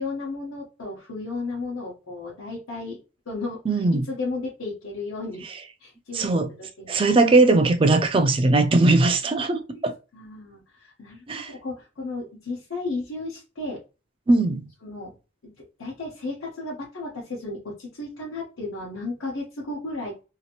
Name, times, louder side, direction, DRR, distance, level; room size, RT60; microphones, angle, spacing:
voice 1, 0.0-3.0 3.3-5.4 5.8-7.2 8.8-8.9 9.7-9.8 10.1-13.8 14.8-15.1 15.4-20.1, left 3 dB, 90° left, 0.9 m, -34 dB
voice 2, 3.7-4.1 6.1-6.5 6.9-9.9 11.3-11.5 14.3-14.7, right 2 dB, 25° right, 0.3 m, -19 dB
2.8 x 2.5 x 2.9 m
head